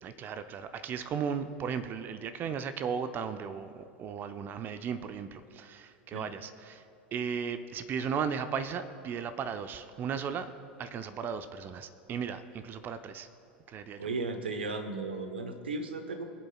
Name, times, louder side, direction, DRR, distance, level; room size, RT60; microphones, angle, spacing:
voice 1, 0.0-6.8 7.1-10.5 10.8-13.3 13.7-14.1, right 7 dB, 35° right, 10 dB, 0.6 m, -36 dB
voice 2, 14.0-16.2, right 3 dB, 80° right, 7 dB, 1.0 m, -35 dB
23.0 x 7.8 x 2.3 m, 2.6 s
figure-of-eight pair, 80°, 6 cm